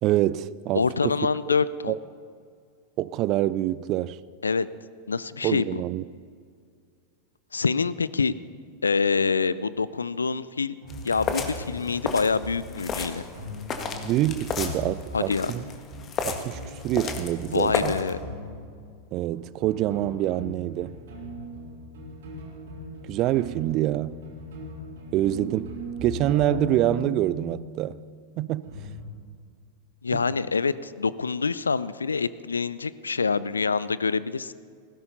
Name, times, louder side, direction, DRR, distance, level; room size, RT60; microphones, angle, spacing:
voice 1, 0.0-1.3 1.9-2.0 3.0-4.2 5.4-6.0 14.0-15.6 16.2-18.0 19.1-21.0 23.0-24.2 25.1-28.0 28.4-28.7 30.1-30.2, right 14 dB, 40° right, 0.4 m, -26 dB
voice 2, 0.7-2.0 4.4-4.7 5.1-5.8 7.5-8.3 8.8-10.7 11.0-13.2 15.1-15.5 17.5-18.2 30.0-34.5, left 5 dB, 75° left, 0.4 m, -26 dB
sound 1, 10.8-19.0 19.3-29.1, left 1 dB, 60° right, 3.6 m, -39 dB
sound 2, 10.9-18.1, left 5 dB, 25° left, 1.6 m, -33 dB
19.0 x 16.0 x 4.1 m
figure-of-eight pair, 90°, 0 cm